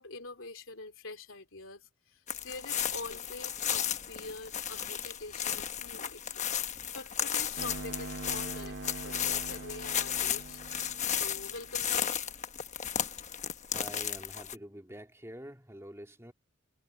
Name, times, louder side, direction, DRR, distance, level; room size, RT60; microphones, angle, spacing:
voice 1, 0.0-10.9 11.2-12.2, left 3 dB, 80° left, 3.1 m, -45 dB
sound 1, 2.3-14.6, left 9 dB, 35° left, 1.1 m, -34 dB
sound 2, 7.6-11.9, right 3 dB, 60° right, 0.8 m, -43 dB
voice 2, 13.7-16.3, right 1 dB, 15° right, 2.7 m, -46 dB
head